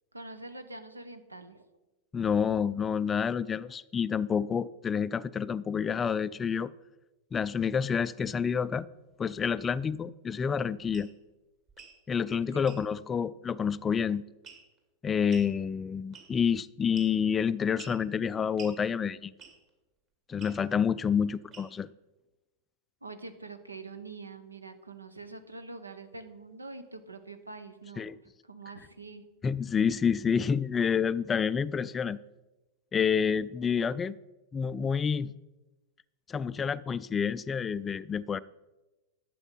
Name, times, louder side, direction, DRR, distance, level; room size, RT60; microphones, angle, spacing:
voice 1, 0.1-1.6 12.5-12.7 23.0-28.1 28.4-29.2, right 3 dB, 80° right, 10 dB, 0.9 m, -45 dB
voice 2, 2.1-6.7 7.3-8.9 9.2-11.1 12.1-14.2 15.0-19.3 20.3-21.9 28.0-28.2 29.4-32.2 32.9-34.2 34.5-35.3 36.3-38.4, left 7 dB, 20° left, 16 dB, 0.3 m, -28 dB
sound 1, 10.9-11.1 11.7-12.0 12.6-12.8 14.4-14.8 15.3-15.5 16.1-16.5 16.9-17.3 17.8-18.0 18.6-18.8 19.4-19.7 20.4-20.6 21.5-21.9, right 5 dB, 35° right, 2.3 m, -49 dB
11.5 x 7.7 x 5.5 m, 1.1 s
figure-of-eight pair, 90°, 0 cm